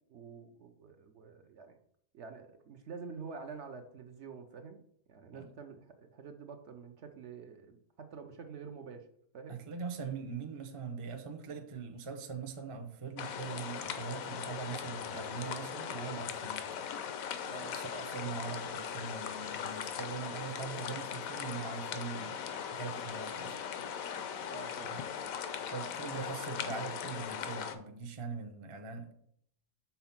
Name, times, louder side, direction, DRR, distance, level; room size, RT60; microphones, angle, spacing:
voice 1, 0.1-1.8 2.1-4.8 5.1-9.1 9.3-9.6 17.5-17.8 24.5-25.0, right 5 dB, 60° right, 0.8 m, -48 dB
voice 2, 9.5-16.7 17.7-23.6 24.9-25.0 25.7-29.1, right 5 dB, 35° right, 0.5 m, -42 dB
sound 1, 13.2-27.7, left 8 dB, 75° left, 1.0 m, -39 dB
5.7 x 3.9 x 5.7 m
omnidirectional pair, 1.5 m